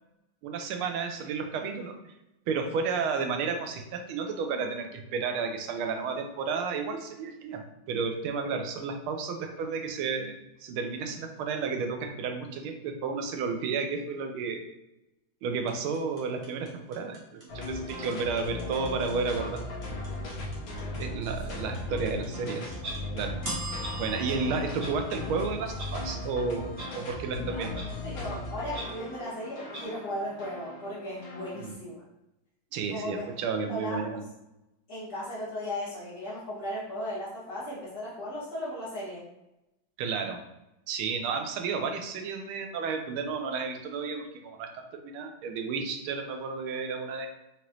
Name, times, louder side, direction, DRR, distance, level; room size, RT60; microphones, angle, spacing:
voice 1, 0.4-2.0 2.5-14.7 15.4-19.6 21.0-22.8 23.1-23.4 23.9-27.9 31.6-31.7 32.7-34.2 40.0-40.4 40.9-47.3, right 5 dB, 90° right, 5 dB, 1.5 m, -32 dB
timer with ding, 15.7-25.8, right 2 dB, 25° right, 0.8 m, -41 dB
sound 1, 17.5-31.7, left 2 dB, 70° left, 1.7 m, -37 dB
Clock, 22.8-23.0 23.8-23.9 24.8-24.9 25.8-25.9 26.8-26.9 27.8-27.9 28.7-28.8 29.7-29.8, right 1 dB, 60° right, 2.2 m, -39 dB
voice 2, 27.3-27.7 28.0-32.0 32.9-33.3 33.7-34.0 34.9-39.2, left 1 dB, 50° left, -8 dB, 2.0 m, -36 dB
5.1 x 3.0 x 3.0 m, 0.90 s
omnidirectional pair, 2.2 m